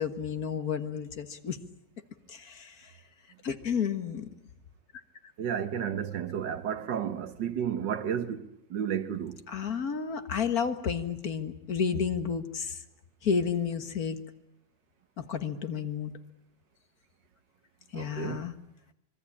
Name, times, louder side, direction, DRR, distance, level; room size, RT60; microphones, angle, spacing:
voice 1, 0.0-1.6 2.3-2.9 3.4-4.3 9.5-12.8 13.2-14.2 15.2-16.1 17.9-18.5, left 6 dB, 55° left, 1.9 m, -31 dB
voice 2, 5.4-8.4 8.7-9.4 17.9-18.5, right 8 dB, 85° right, 1.9 m, -32 dB
26.0 x 23.0 x 8.6 m
omnidirectional pair, 1.9 m